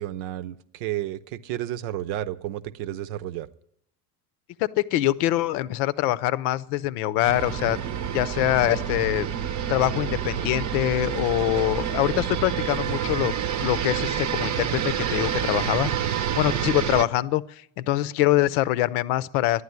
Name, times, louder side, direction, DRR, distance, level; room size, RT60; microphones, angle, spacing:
voice 1, 0.0-3.5, right 13 dB, 65° right, 15 dB, 0.8 m, -32 dB
voice 2, 4.6-7.8 8.1-9.3 9.7-13.3 13.6-19.6, left 15 dB, 65° left, 17 dB, 0.7 m, -24 dB
sound 1, 7.2-17.1, right 9 dB, 35° right, 0.8 m, -28 dB
11.5 x 9.5 x 9.6 m, 0.72 s
hypercardioid pair, 75°, 49 cm